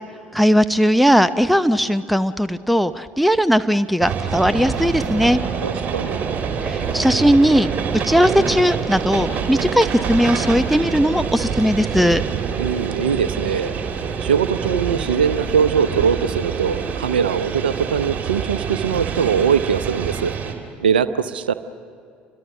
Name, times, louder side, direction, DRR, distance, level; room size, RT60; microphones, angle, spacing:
voice 1, 0.3-5.4 6.6-7.7 8.0-12.2, equal, ahead, 14 dB, 0.7 m, -18 dB
sound 1, 4.0-20.5, right 6 dB, 35° right, 3.4 m, -26 dB
voice 2, 5.6-6.2 12.6-13.7 14.2-20.3 20.8-21.5, right 7 dB, 75° right, 14 dB, 0.8 m, -21 dB
29.5 x 25.0 x 6.2 m, 2.4 s
figure-of-eight pair, 60°, 5 cm